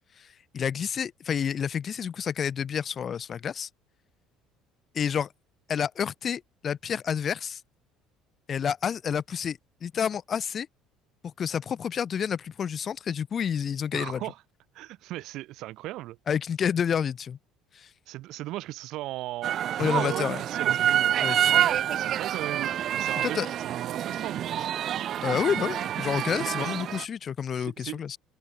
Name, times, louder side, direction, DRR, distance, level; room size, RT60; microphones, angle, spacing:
voice 1, 0.2-3.7 4.9-5.3 5.7-7.6 8.5-10.7 11.2-14.2 16.3-17.4 17.7-17.9 19.8-20.4 21.2-21.7 23.2-23.5 25.2-28.2, left 7 dB, 25° left, 0.6 m, -29 dB
voice 2, 13.9-14.4 14.7-16.2 18.1-21.2 21.6-24.5 26.3-26.7 27.5-28.0, right 16 dB, 55° right, 1.6 m, -38 dB
sound 1, 19.4-27.1, right 10 dB, 35° right, 0.6 m, -27 dB
open air
cardioid pair, 175°, 0 cm